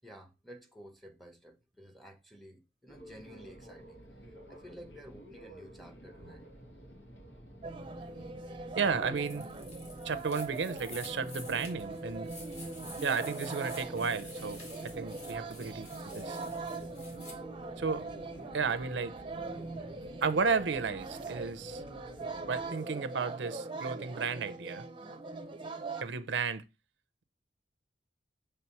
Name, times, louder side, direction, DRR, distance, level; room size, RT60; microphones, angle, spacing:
voice 1, 0.0-4.0 4.5-6.5, equal, ahead, 0.8 m, -52 dB
sound 1, 2.9-22.7, equal, 85° left, 2.0 m, -51 dB
sound 2, 7.6-26.0, right 3 dB, 30° right, 0.6 m, -41 dB
voice 2, 8.8-9.5 10.0-12.3 13.0-14.6 15.0-15.9 16.1-16.4 17.8-18.0 18.5-19.1 20.2-21.8 22.5-24.8 26.0-26.6, right 5 dB, 80° right, 0.6 m, -33 dB
sound 3, 9.2-17.3, left 2 dB, 40° left, 2.0 m, -50 dB
7.0 x 3.3 x 4.5 m
head